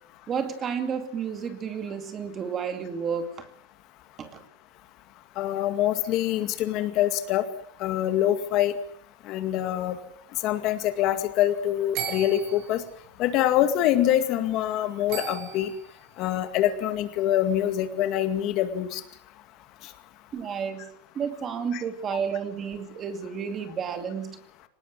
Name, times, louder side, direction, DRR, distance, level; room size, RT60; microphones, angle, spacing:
voice 1, 0.3-3.5 4.2-4.4 20.3-20.9 21.1-24.4, right 6 dB, 20° right, 8 dB, 2.4 m, -31 dB
voice 2, 5.4-7.4 7.8-8.7 9.3-10.0 10.4-12.8 13.2-15.7 16.2-19.0 21.7-21.8, left 12 dB, 35° left, 9 dB, 2.1 m, -25 dB
sound 1, 11.9-12.8 15.1-16.0, right 6 dB, 40° right, 8.0 m, -35 dB
25.5 x 19.0 x 7.8 m, 0.64 s
supercardioid pair, 170°, 0 cm